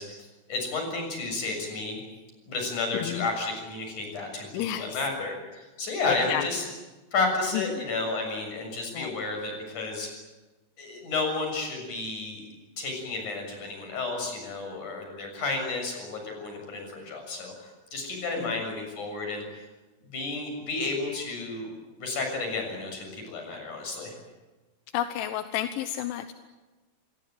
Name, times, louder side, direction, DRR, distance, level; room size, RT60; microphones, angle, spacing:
voice 1, 0.0-2.0 2.5-6.6 7.1-10.1 10.8-12.4 12.8-19.6 20.1-21.7 22.0-24.2, left 3 dB, 40° left, 3 dB, 8.2 m, -32 dB
voice 2, 2.9-3.3 4.5-5.0 6.0-6.4 7.5-7.8 8.9-9.1 18.4-18.6 24.9-26.3, left 12 dB, 85° left, 9 dB, 3.4 m, -31 dB
27.0 x 22.0 x 9.2 m, 1.2 s
omnidirectional pair, 5.4 m